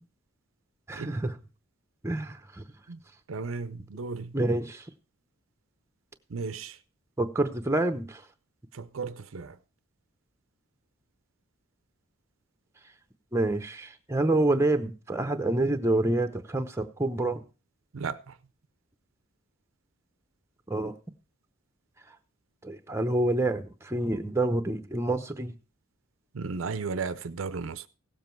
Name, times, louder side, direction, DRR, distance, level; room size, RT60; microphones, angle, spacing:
voice 1, 0.9-1.4 2.0-2.7 4.3-4.8 7.2-8.2 13.3-17.4 20.7-20.9 22.6-25.5, right 2 dB, 15° right, 0.8 m, -27 dB
voice 2, 3.3-4.3 6.3-6.8 8.7-9.6 17.9-18.2 26.3-27.8, right 4 dB, 70° right, 0.6 m, -34 dB
16.5 x 7.5 x 4.5 m
head